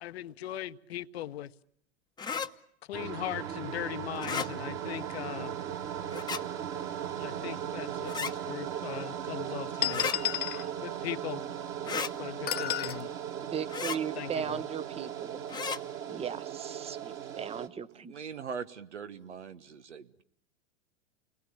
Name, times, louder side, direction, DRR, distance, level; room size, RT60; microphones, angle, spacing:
voice 1, 0.0-1.5 2.9-5.5 7.2-10.4 10.8-11.4 12.2-13.1 14.1-14.6, left 12 dB, 65° left, 12 dB, 1.1 m, -39 dB
sound 1, 2.2-2.5 4.1-4.5 6.1-6.4 8.0-8.3 9.9-10.2 11.8-12.1 13.7-14.0 15.5-15.8, left 6 dB, 10° left, 1.1 m, -33 dB
sound 2, 2.9-17.7, right 9 dB, 35° right, 2.5 m, -38 dB
sound 3, 7.8-7.9 8.8-8.9 9.8-10.7 12.5-13.0, left 12 dB, 25° left, 1.4 m, -31 dB
voice 2, 13.5-15.4 16.1-18.1, right 8 dB, 15° right, 15 dB, 1.0 m, -37 dB
voice 3, 17.9-20.2, right 6 dB, 80° right, 11 dB, 1.5 m, -41 dB
29.0 x 20.5 x 8.5 m, 0.72 s
hypercardioid pair, 100°, 34 cm